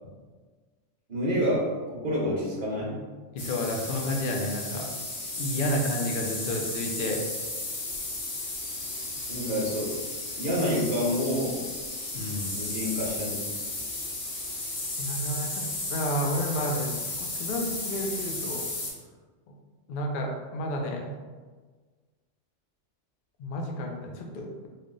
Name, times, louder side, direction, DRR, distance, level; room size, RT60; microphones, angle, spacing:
voice 1, 1.1-3.0 9.3-9.9 10.4-11.6 12.5-13.4, equal, 45° right, -6 dB, 1.0 m, -28 dB
voice 2, 3.3-4.9 5.4-7.2 12.1-12.5 15.0-18.7 19.9-21.1 23.4-24.7, left 1 dB, 60° left, 2 dB, 0.6 m, -31 dB
sound 1, 3.4-18.9, left 2 dB, 85° left, 1.4 m, -34 dB
3.2 x 2.1 x 3.7 m, 1.4 s
omnidirectional pair, 1.3 m